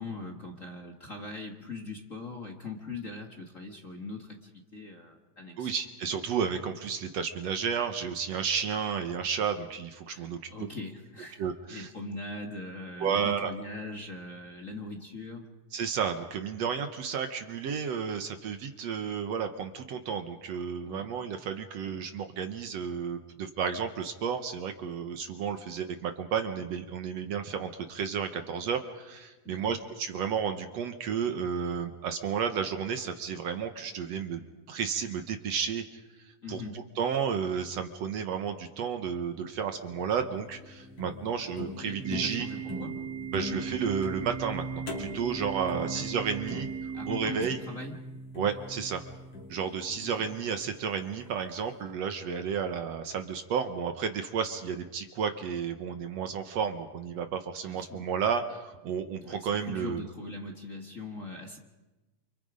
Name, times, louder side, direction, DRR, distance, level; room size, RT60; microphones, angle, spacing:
voice 1, 0.0-5.7 10.1-15.5 20.8-21.1 29.4-29.8 36.4-36.9 41.7-43.0 45.9-46.1 46.5-46.6 46.9-48.1 50.0-50.1 57.6-58.1 59.2-61.6, left 2 dB, 30° left, 2 dB, 1.8 m, -41 dB
voice 2, 5.6-10.4 11.4-11.9 13.0-13.5 15.7-36.6 37.0-42.5 43.3-46.7 47.1-47.6 48.4-49.0 49.5-60.0, right 7 dB, 65° right, 7 dB, 2.1 m, -32 dB
sound 1, 39.8-51.0, left 1 dB, 50° left, 4.4 m, -41 dB
Organ, 42.0-48.1, right 9 dB, 25° right, 2.1 m, -39 dB
29.0 x 28.5 x 5.1 m, 1.1 s
omnidirectional pair, 3.5 m